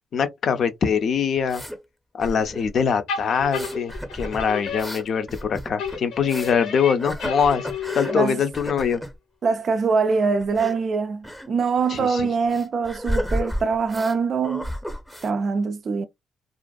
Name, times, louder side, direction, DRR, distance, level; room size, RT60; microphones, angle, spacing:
voice 1, 0.1-1.6 2.1-7.7 8.0-9.0 11.9-12.2, left 6 dB, 55° left, 0.5 m, -23 dB
sound 1, 1.4-1.8 2.2-2.9 3.4-6.6 7.0-8.2 8.5-9.1 10.4-10.8 11.2-11.5 11.8-11.9 12.5-14.2 14.4-15.3, equal, 5° left, 0.7 m, -32 dB
sound 2, 3.1-5.4 5.8-8.6, left 6 dB, 85° left, 0.7 m, -33 dB
voice 2, 9.4-14.7 15.2-16.1, right 5 dB, 50° right, 0.3 m, -23 dB
2.5 x 2.4 x 2.3 m
cardioid pair, 90°, 0 cm